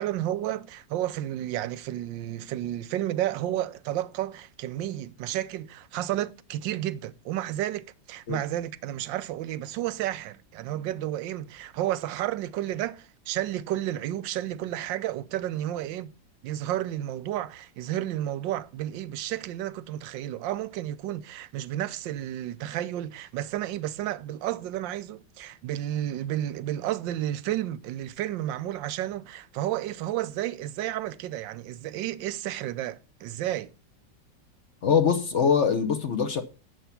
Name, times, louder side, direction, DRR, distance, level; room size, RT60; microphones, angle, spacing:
voice 1, 0.0-16.1 16.4-33.7, right 13 dB, 90° right, 1.4 m, -31 dB
voice 2, 34.8-36.4, left 6 dB, 50° left, 0.9 m, -23 dB
9.0 x 7.1 x 5.7 m
omnidirectional pair, 1.9 m